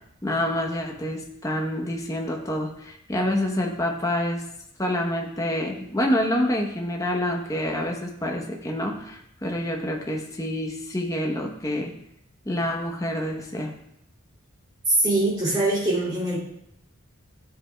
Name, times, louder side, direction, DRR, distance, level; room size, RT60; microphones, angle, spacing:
voice 1, 0.2-4.4 4.8-11.9 12.4-13.7, left 1 dB, 15° left, 0 dB, 0.9 m, -27 dB
voice 2, 14.9-16.4, right 2 dB, 20° right, -6 dB, 3.0 m, -22 dB
13.0 x 7.8 x 2.3 m, 0.75 s
head